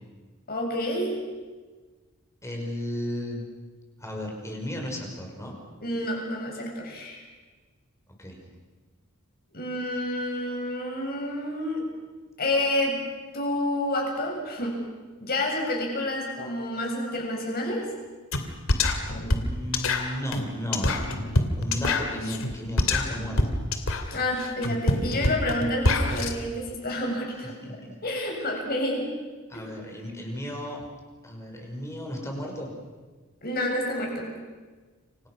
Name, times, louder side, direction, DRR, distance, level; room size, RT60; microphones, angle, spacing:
voice 1, 0.5-1.2 5.8-7.2 9.5-11.8 12.4-13.0 13.3-14.8 15.2-17.8 19.1-19.3 24.1-27.5 28.0-29.0 29.5-29.6 33.4-34.3, left 1 dB, 45° left, 0 dB, 7.7 m, -29 dB
voice 2, 2.4-3.4 4.0-5.5 8.2-8.4 19.4-21.2 21.6-23.4 27.6-27.9 29.5-30.8 31.2-32.7, equal, 15° left, 1 dB, 5.6 m, -34 dB
sound 1, 18.3-18.4 18.7-26.3, left 2 dB, 65° left, 2.7 m, -25 dB
29.5 x 25.5 x 6.4 m, 1.3 s
head